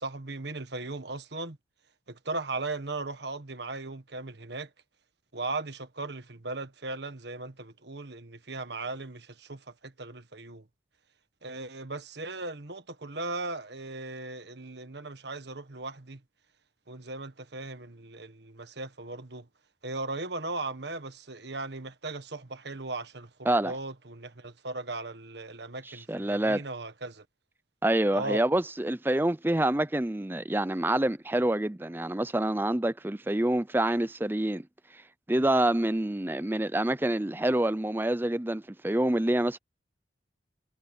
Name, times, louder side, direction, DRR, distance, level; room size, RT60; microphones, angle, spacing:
voice 1, 0.0-1.6 2.1-4.7 5.3-10.6 11.4-16.2 16.9-19.5 19.8-27.2 28.1-28.4, right 2 dB, 65° right, 1.6 m, -37 dB
voice 2, 25.9-26.6 27.8-34.7 35.3-39.6, right 1 dB, 10° right, 0.5 m, -27 dB
head